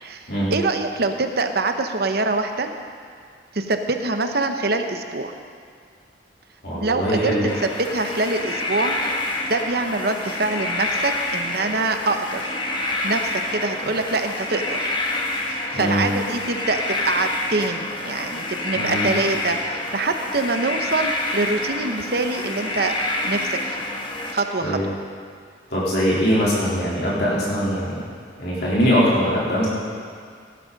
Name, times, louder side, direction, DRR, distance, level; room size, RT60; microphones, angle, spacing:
voice 1, 0.0-2.7 3.5-5.3 6.7-7.3 7.9-8.9 9.5-12.6 13.0-14.9 15.5-22.9 23.2-23.9 24.3-24.9, right 3 dB, 55° right, 6 dB, 0.9 m, -25 dB
voice 2, 6.6-7.4 15.7-16.1 18.7-19.1 24.6-24.8 25.7-27.9 28.4-29.7, equal, 60° left, -8 dB, 3.7 m, -21 dB
sound 1, 7.5-24.3, left 2 dB, 25° left, 1.2 m, -27 dB
18.5 x 11.0 x 4.1 m, 2.1 s
head